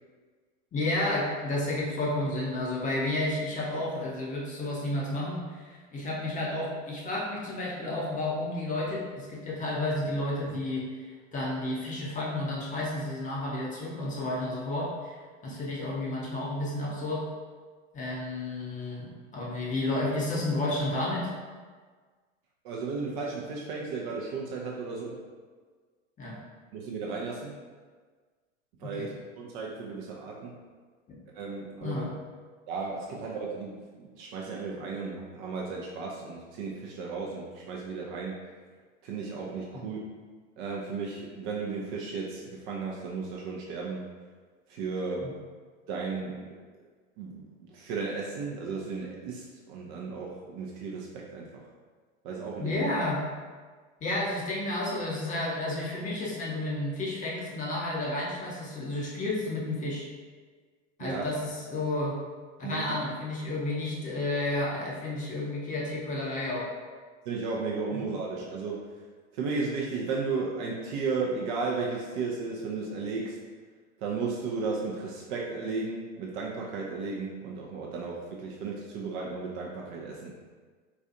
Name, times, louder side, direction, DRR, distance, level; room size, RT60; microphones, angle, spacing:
voice 1, 0.7-11.1 11.3-15.2 15.4-17.3 17.9-21.3 26.2-26.4 28.8-29.1 31.1-31.2 31.8-32.1 39.7-39.9 45.2-45.3 52.6-53.2 54.0-60.1 61.0-62.2 62.6-66.7 67.9-68.0, left 2 dB, 20° left, -4 dB, 0.7 m, -31 dB
voice 2, 22.6-25.2 26.7-27.5 28.8-29.1 29.3-30.6 31.3-32.0 32.7-38.4 39.0-40.0 40.6-44.1 44.7-45.3 45.9-46.5 47.2-51.6 52.2-52.8 61.0-61.3 62.6-62.9 67.3-68.9 69.3-73.4 74.0-80.3, right 4 dB, 40° right, -2 dB, 0.5 m, -34 dB
4.1 x 2.3 x 2.5 m, 1.5 s
figure-of-eight pair, 90°, 39 cm